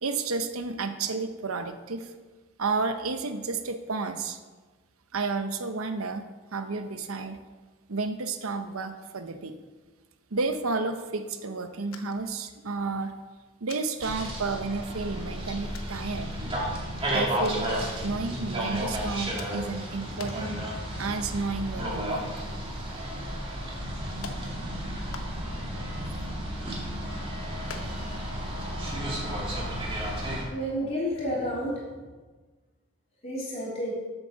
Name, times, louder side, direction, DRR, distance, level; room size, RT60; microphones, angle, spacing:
voice 1, 0.0-2.1 2.6-4.4 5.1-6.2 6.5-7.4 7.9-9.5 10.3-13.1 13.6-16.3 17.1-17.7 18.0-20.6 21.0-22.2, right 4 dB, 85° right, 8 dB, 0.9 m, -31 dB
sound 1, 11.9-12.3 12.6-12.7 13.7-13.9 14.8-14.9 15.7-15.9 17.4-17.7 19.4-19.8 20.2-20.6 21.0-21.1 21.5-22.4 22.6-22.7 23.6-23.7 24.2-24.4 25.1-25.7 26.1-26.9 27.7-28.1 28.4-28.6 28.9-29.0 29.4-29.5, left 4 dB, 85° left, 1.1 m, -45 dB
sound 2, 14.0-30.4, equal, 25° right, 2.1 m, -33 dB
voice 2, 30.5-31.8 33.2-34.0, equal, 30° left, -6 dB, 3.4 m, -30 dB
8.2 x 7.6 x 6.5 m, 1.3 s
head